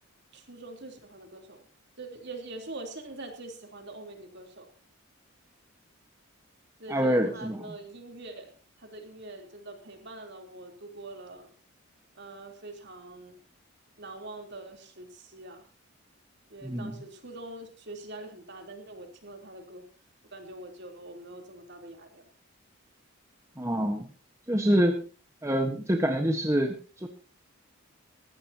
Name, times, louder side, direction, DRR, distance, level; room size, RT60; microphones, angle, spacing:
voice 1, 0.3-1.7 2.0-4.7 6.8-8.5 8.8-11.5 12.1-13.4 14.0-15.6 16.5-19.8 20.3-22.3, right 2 dB, 50° right, 3 dB, 3.5 m, -44 dB
voice 2, 6.9-7.8 16.6-16.9 23.6-24.1 24.5-25.0 25.4-27.1, equal, 15° right, 4 dB, 1.3 m, -26 dB
19.5 x 15.0 x 2.9 m, 0.34 s
head